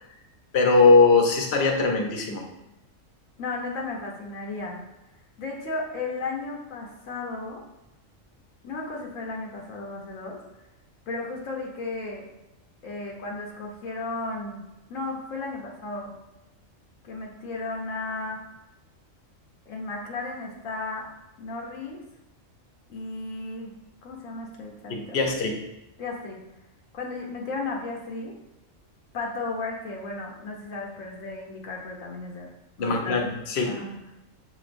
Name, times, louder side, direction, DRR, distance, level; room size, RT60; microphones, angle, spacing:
voice 1, 0.5-2.4 24.9-25.6 32.8-33.2 33.5-33.7, left 3 dB, 60° left, 2 dB, 0.9 m, -20 dB
voice 2, 3.4-4.9 5.4-7.6 8.6-10.4 11.1-12.3 12.8-14.6 14.9-16.1 17.0-18.4 19.7-21.1 21.4-22.0 22.9-23.7 24.0-25.2 26.0-26.4 26.9-28.4 29.1-32.5 32.8-33.4 33.6-34.0, left 3 dB, 80° left, -1 dB, 1.1 m, -34 dB
6.5 x 3.0 x 2.5 m, 0.93 s
omnidirectional pair, 1.4 m